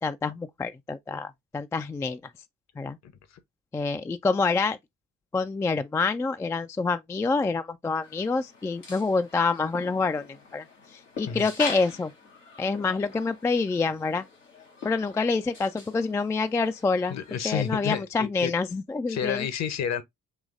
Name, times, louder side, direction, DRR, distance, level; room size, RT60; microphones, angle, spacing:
voice 1, 0.0-2.2 2.8-3.0 3.7-4.8 5.3-10.2 10.5-10.6 10.9-12.1 12.6-14.2 14.8-17.2 17.4-19.5, left 4 dB, 10° left, 0.3 m, -27 dB
sound 1, 8.0-18.0, left 4 dB, 90° left, 1.1 m, -44 dB
voice 2, 17.1-18.5 19.1-20.0, left 8 dB, 45° left, 0.8 m, -30 dB
6.4 x 3.1 x 2.4 m
figure-of-eight pair, 45°, 36 cm